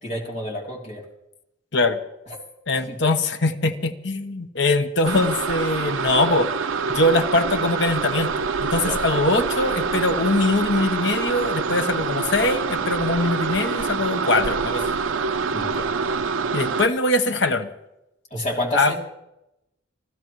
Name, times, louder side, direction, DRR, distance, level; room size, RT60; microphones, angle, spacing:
voice 1, 0.0-1.0 2.9-3.0 8.8-9.0 15.5-15.9 18.3-19.0, left 1 dB, 35° left, -3 dB, 3.0 m, -29 dB
voice 2, 2.7-6.5 6.9-8.3 8.6-14.9 16.5-17.7 18.7-19.0, left 2 dB, 60° left, 7 dB, 1.0 m, -22 dB
sound 1, 5.0-16.9, right 5 dB, 75° right, 0.6 m, -26 dB
27.0 x 15.0 x 3.1 m, 0.88 s
head